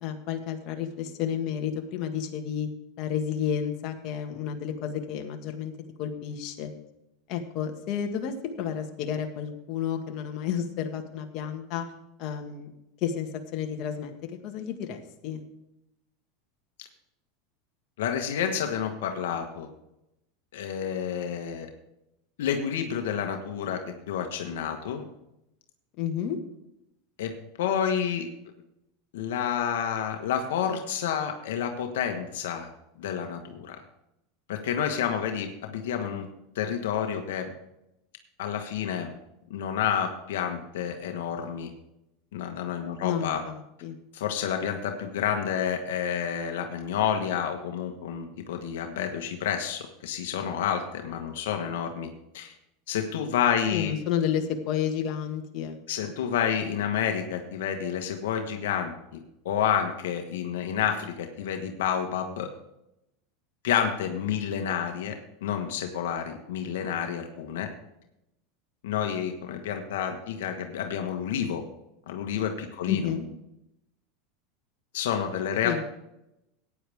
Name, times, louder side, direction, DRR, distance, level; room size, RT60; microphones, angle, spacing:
voice 1, 0.0-2.7 3.0-5.7 6.0-6.7 7.3-11.8 12.2-12.7 13.0-15.4 26.0-26.4 43.0-43.9 53.7-56.1 72.9-73.3 75.6-75.8, left 8 dB, 50° left, 4 dB, 1.7 m, -31 dB
voice 2, 18.0-19.7 20.5-21.7 22.4-23.8 24.1-25.0 27.2-28.3 29.1-32.7 33.0-33.8 34.5-36.3 36.5-37.5 38.4-39.1 39.5-41.7 42.3-43.4 44.1-52.1 52.3-52.5 52.9-53.9 55.9-62.5 63.6-65.1 65.4-67.7 68.8-71.6 72.1-73.1 74.9-75.8, left 8 dB, 80° left, 4 dB, 1.3 m, -29 dB
15.0 x 9.7 x 3.5 m, 0.86 s
supercardioid pair, 125°, 0 cm